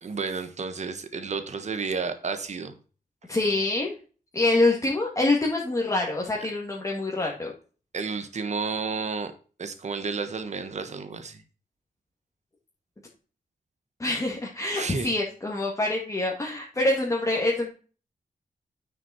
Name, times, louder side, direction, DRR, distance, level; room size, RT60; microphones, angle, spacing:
voice 1, 0.0-2.7 7.9-9.3 9.6-11.4 14.7-15.1, right 5 dB, 50° right, 9 dB, 1.3 m, -31 dB
voice 2, 3.3-3.9 4.3-7.5 14.0-17.7, left 2 dB, 20° left, -2 dB, 2.1 m, -25 dB
9.2 x 6.2 x 4.3 m, 0.38 s
wide cardioid pair, 130°, 15 cm